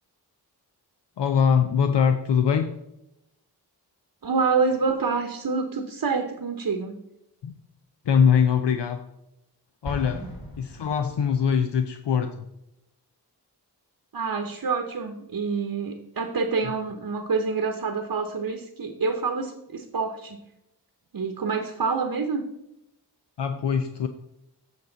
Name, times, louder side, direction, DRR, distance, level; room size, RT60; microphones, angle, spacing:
voice 1, 1.2-2.7 7.4-7.6 8.1-9.0 9.8-10.2 10.6-12.4 23.4-24.1, left 7 dB, 80° left, 7 dB, 0.6 m, -22 dB
voice 2, 4.2-7.0 14.1-20.4 21.1-22.4, right 4 dB, 60° right, 5 dB, 0.9 m, -27 dB
Explosion, 9.8-11.7, left 1 dB, 55° left, 2.0 m, -39 dB
8.0 x 6.4 x 3.9 m, 0.85 s
cardioid pair, 40°, 41 cm